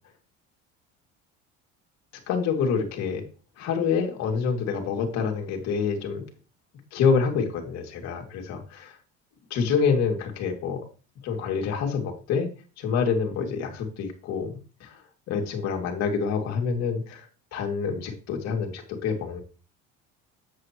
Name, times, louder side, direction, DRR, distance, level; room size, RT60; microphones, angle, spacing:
voice 1, 2.3-3.2 3.6-6.2 6.9-9.0 9.5-10.8 11.2-12.5 12.8-14.5 14.8-15.0 15.3-17.3 17.5-19.4, left 6 dB, 60° left, 2 dB, 2.5 m, -27 dB
8.3 x 7.7 x 3.1 m, 0.35 s
supercardioid pair, 110°, 30 cm